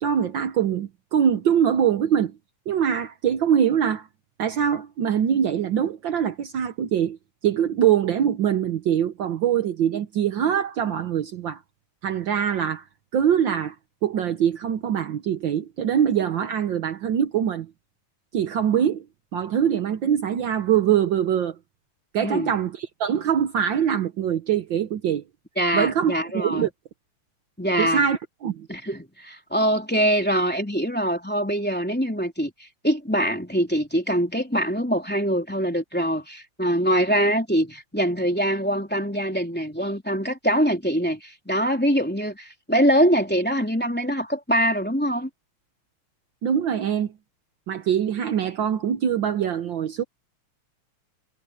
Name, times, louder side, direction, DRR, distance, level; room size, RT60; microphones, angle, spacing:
voice 1, 0.0-2.3 2.7-4.1 4.4-7.2 7.4-11.6 12.0-12.8 13.1-13.7 14.0-17.7 18.3-19.0 19.3-21.6 22.1-25.2 25.7-26.7 27.8-28.7 46.4-47.1 47.7-50.0, right 9 dB, 80° right, 1.0 m, -23 dB
voice 2, 22.2-22.5 25.6-26.7 27.6-28.0 28.7-45.3, equal, 5° left, 3.0 m, -23 dB
omnidirectional pair, 3.5 m